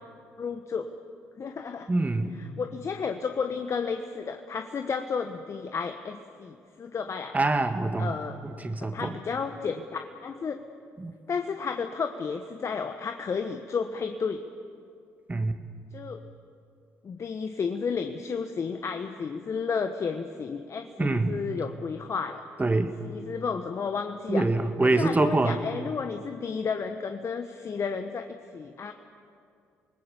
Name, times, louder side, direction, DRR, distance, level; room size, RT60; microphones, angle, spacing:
voice 1, 0.4-0.9 1.4-1.9 2.4-7.3 8.0-8.3 8.8-10.6 11.3-14.4 15.9-16.2 17.0-22.4 23.0-24.4 24.8-28.9, left 5 dB, 45° left, 7 dB, 1.2 m, -32 dB
voice 2, 1.9-2.4 7.3-8.2 8.4-9.2 11.0-11.1 15.3-15.6 21.0-21.4 22.6-22.9 24.3-25.6, right 2 dB, 25° right, 8 dB, 2.0 m, -25 dB
27.5 x 20.0 x 7.1 m, 2.4 s
hypercardioid pair, 50°, 7 cm